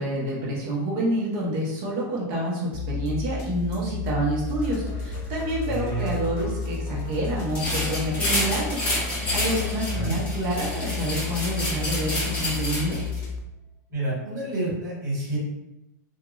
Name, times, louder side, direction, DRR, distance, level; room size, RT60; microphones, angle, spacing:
voice 1, 0.0-8.8 9.3-13.0, right 1 dB, 45° right, -3 dB, 1.1 m, -28 dB
sound 1, 2.7-13.4, left 5 dB, 35° left, 0.5 m, -32 dB
sound 2, 4.4-13.0, left 2 dB, 50° left, 1.0 m, -44 dB
voice 2, 5.7-6.1 9.9-10.2 13.9-15.4, right 2 dB, 85° right, -4 dB, 1.4 m, -29 dB
sound 3, 7.5-13.2, left 1 dB, 15° left, 1.2 m, -29 dB
2.9 x 2.6 x 2.4 m, 0.91 s
supercardioid pair, 145°, 10 cm